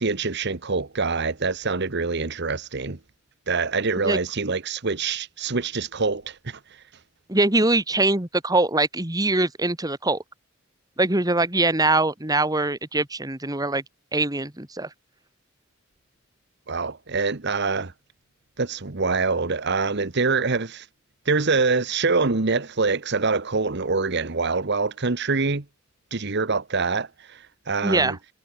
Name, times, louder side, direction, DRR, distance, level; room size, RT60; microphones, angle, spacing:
voice 1, 0.0-3.0 3.5-6.6 16.7-17.9 18.6-20.9 21.2-25.6 26.1-28.2, right 4 dB, 55° right, 1.2 m, -25 dB
voice 2, 7.3-10.2 11.0-13.8 14.1-14.9 27.8-28.2, right 2 dB, 20° right, 2.2 m, -22 dB
head